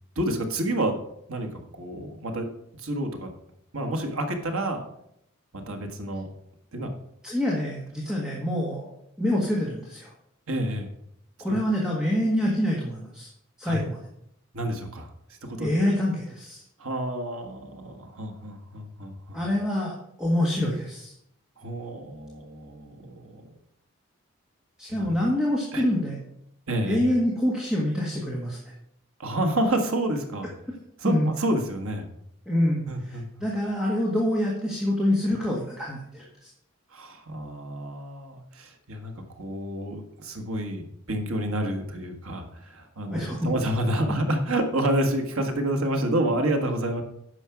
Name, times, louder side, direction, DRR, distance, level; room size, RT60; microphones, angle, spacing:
voice 1, 0.1-1.0 1.3-1.5 1.8-2.5 2.8-3.3 3.7-4.8 5.5-6.3 6.7-6.9 10.5-10.9 11.5-11.6 13.6-13.8 14.5-15.1 15.5-15.7 16.8-19.4 21.6-23.4 24.9-25.1 25.7-25.8 26.7-27.0 29.2-30.5 31.0-32.1 32.9-33.3 36.9-47.0, right 1 dB, 90° right, 4 dB, 1.6 m, -29 dB
voice 2, 7.2-8.9 9.2-10.1 11.4-13.3 13.6-14.0 15.6-16.6 19.3-21.1 24.8-26.2 26.8-28.6 31.0-31.3 32.5-36.5 43.1-43.7, left 1 dB, 5° right, -4 dB, 1.6 m, -26 dB
9.8 x 6.4 x 6.0 m, 0.75 s
head